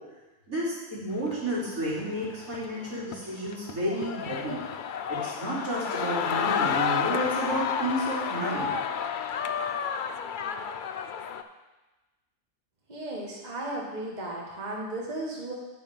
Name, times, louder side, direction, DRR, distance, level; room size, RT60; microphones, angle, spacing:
voice 1, 0.5-4.6 5.1-8.7, right 1 dB, 85° right, -8 dB, 3.7 m, -31 dB
sound 1, 1.2-11.4, left 7 dB, 70° left, 0.4 m, -31 dB
voice 2, 12.9-15.5, right 1 dB, 30° right, -3 dB, 1.6 m, -35 dB
9.0 x 6.2 x 5.3 m, 1.1 s
omnidirectional pair, 1.4 m